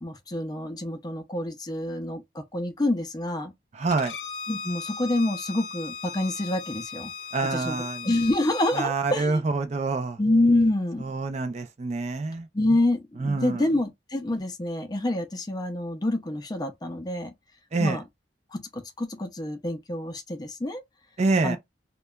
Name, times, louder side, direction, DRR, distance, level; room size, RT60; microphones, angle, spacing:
voice 1, 0.0-3.5 4.5-7.1 7.5-7.7 8.0-9.4 10.2-11.0 12.5-17.3 17.8-18.0 18.5-20.8 21.4-21.6, left 1 dB, 25° left, 0.5 m, -27 dB
voice 2, 3.7-4.1 7.3-8.1 8.7-10.2 11.0-12.5 13.2-13.6 17.7-18.0 21.2-21.6, right 3 dB, 40° right, 0.4 m, -26 dB
Bowed string instrument, 3.9-8.9, left 5 dB, 75° left, 0.5 m, -37 dB
2.8 x 2.2 x 2.2 m
head